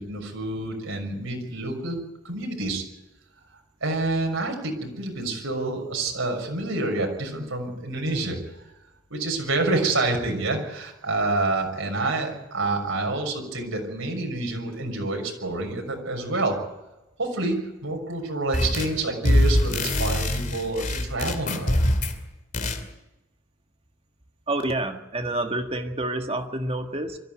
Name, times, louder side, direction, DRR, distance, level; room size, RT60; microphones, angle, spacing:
voice 1, 0.0-2.8 3.8-8.6 9.1-16.6 17.2-21.8, right 2 dB, 80° right, 1 dB, 6.2 m, -28 dB
sound 1, 18.5-19.0 19.2-22.2 22.5-22.8, left 1 dB, 40° left, 2.5 m, -23 dB
voice 2, 24.5-27.2, right 2 dB, 30° right, 5 dB, 1.8 m, -28 dB
24.0 x 14.0 x 9.3 m, 0.98 s
head